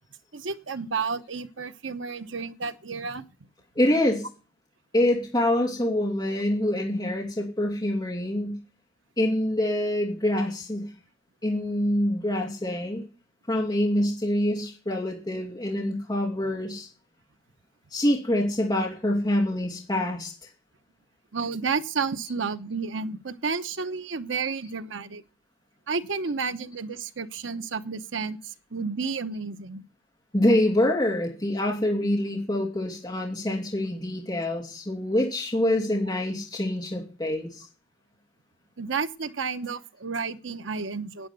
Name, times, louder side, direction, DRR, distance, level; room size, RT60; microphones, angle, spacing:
voice 1, 0.3-3.3 21.3-25.2 25.9-29.8 38.8-41.3, right 5 dB, 80° right, 0.9 m, -31 dB
voice 2, 3.7-4.3 4.9-8.6 9.2-10.9 11.4-13.0 13.5-16.9 17.9-20.3 30.3-37.6, left 1 dB, 20° left, 2.9 m, -25 dB
10.5 x 9.3 x 8.1 m
head